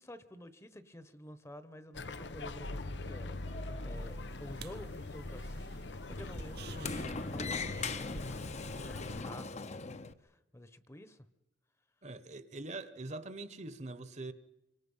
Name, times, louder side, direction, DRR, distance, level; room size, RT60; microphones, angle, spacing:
voice 1, 0.0-5.5 5.8-11.3, left 1 dB, 15° left, 1.1 m, -50 dB
sound 1, 1.9-9.2, left 2 dB, 90° left, 1.0 m, -42 dB
Sliding door, 3.1-10.1, left 4 dB, 40° left, 0.9 m, -42 dB
sound 2, 4.0-9.2, right 3 dB, 65° right, 1.1 m, -52 dB
voice 2, 12.0-14.3, right 2 dB, 40° right, 1.2 m, -43 dB
26.5 x 24.0 x 5.6 m
head